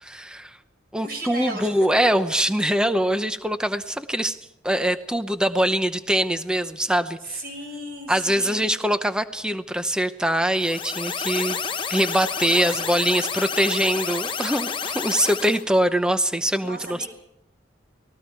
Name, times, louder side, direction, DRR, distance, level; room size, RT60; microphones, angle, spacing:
voice 1, 0.0-0.6 0.9-4.4 4.6-7.4 8.1-11.6 11.9-17.1, right 1 dB, 5° right, 10 dB, 0.7 m, -23 dB
voice 2, 1.0-1.9 7.2-8.8 12.5-12.9 16.6-17.1, right 1 dB, 50° right, 3 dB, 6.2 m, -35 dB
sound 1, 10.5-15.6, left 6 dB, 25° left, 0.9 m, -29 dB
29.0 x 20.0 x 4.7 m, 0.82 s
head